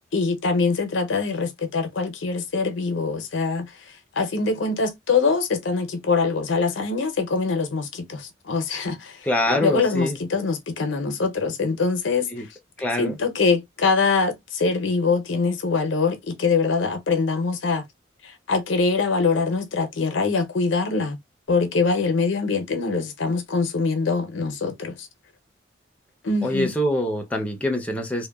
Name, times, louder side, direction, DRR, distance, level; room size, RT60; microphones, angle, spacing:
voice 1, 0.1-3.7 4.2-9.2 9.5-12.3 13.0-17.8 18.2-21.2 21.5-25.1 26.2-26.7, left 4 dB, 85° left, 0.6 m, -23 dB
voice 2, 9.2-10.2 12.3-12.5 12.8-13.2 26.4-28.3, left 1 dB, 5° left, 0.4 m, -24 dB
2.9 x 2.1 x 2.2 m
head